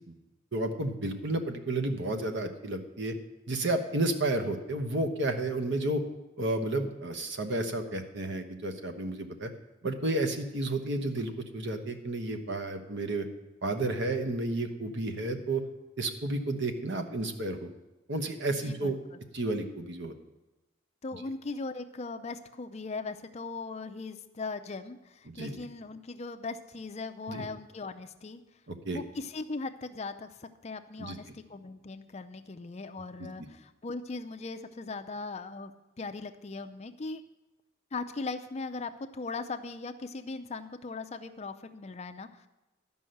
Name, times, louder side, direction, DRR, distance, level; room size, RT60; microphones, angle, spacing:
voice 1, 0.5-3.1 3.5-6.0 6.4-9.5 9.8-13.3 13.6-15.6 16.0-17.7 18.1-19.0 19.3-20.1 25.3-25.5 27.3-27.4 28.7-29.0 31.0-31.2, right 2 dB, 60° right, 7 dB, 1.1 m, -31 dB
voice 2, 18.6-19.2 21.0-28.4 28.8-35.7 36.0-37.2 37.9-42.5, left 3 dB, 30° left, 8 dB, 0.5 m, -39 dB
12.0 x 5.5 x 7.8 m, 1.1 s
head